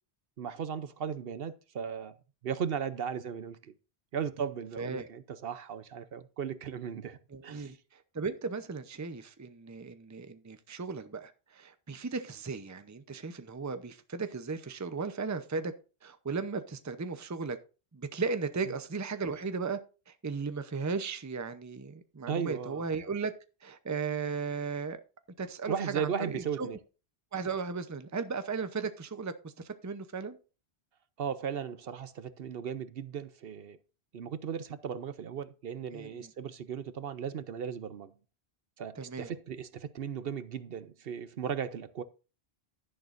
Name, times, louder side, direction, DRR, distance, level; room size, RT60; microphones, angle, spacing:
voice 1, 0.4-2.2 2.4-3.7 4.1-7.2 7.4-7.8 18.6-18.7 22.3-22.9 25.7-26.8 31.2-33.8 34.1-38.1 38.8-42.0, right 7 dB, 70° right, 0.9 m, -36 dB
voice 2, 7.3-7.7 8.1-15.7 16.0-17.6 17.9-19.8 20.1-23.3 23.6-25.0 25.4-26.7 27.3-30.4 35.9-36.3 39.0-39.3, right 4 dB, 20° right, 0.6 m, -36 dB
11.5 x 10.5 x 2.6 m
omnidirectional pair, 1.0 m